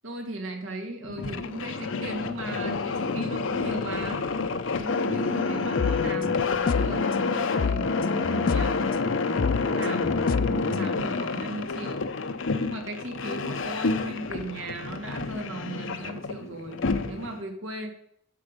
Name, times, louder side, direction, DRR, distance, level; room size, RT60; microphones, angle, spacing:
voice 1, 0.0-4.3 4.8-8.8 9.1-12.0 12.5-17.9, right 2 dB, 85° right, 3 dB, 2.4 m, -37 dB
sound 1, 1.0-17.4, left 4 dB, 75° left, 0.7 m, -29 dB
sound 2, 5.8-7.0 7.6-8.8 9.4-10.9, left 6 dB, 45° left, 0.3 m, -28 dB
12.0 x 7.2 x 5.2 m, 0.72 s
head